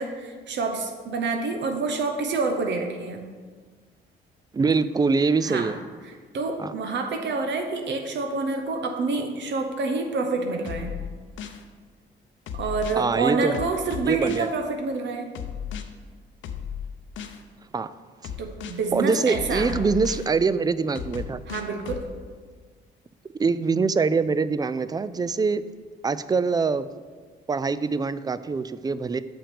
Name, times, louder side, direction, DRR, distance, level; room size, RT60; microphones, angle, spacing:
voice 1, 0.0-3.2 5.4-5.7 6.1-10.9 12.5-15.3 18.4-19.8 21.5-22.0, right 3 dB, 65° right, 4 dB, 0.9 m, -28 dB
voice 2, 4.5-5.8 6.6-6.7 13.0-13.6 14.0-14.5 17.7-17.9 18.9-21.4 23.4-25.6 26.0-26.9 27.5-29.2, right 4 dB, 20° right, 15 dB, 0.3 m, -24 dB
sound 1, 10.7-11.6 12.5-13.0 13.5-14.5 15.4-15.8 16.4-17.4 18.2-18.8 19.3-20.3 21.0-22.1, left 8 dB, 75° left, 0.7 m, -34 dB
7.1 x 5.8 x 5.1 m, 1.5 s
cardioid pair, 90°, 20 cm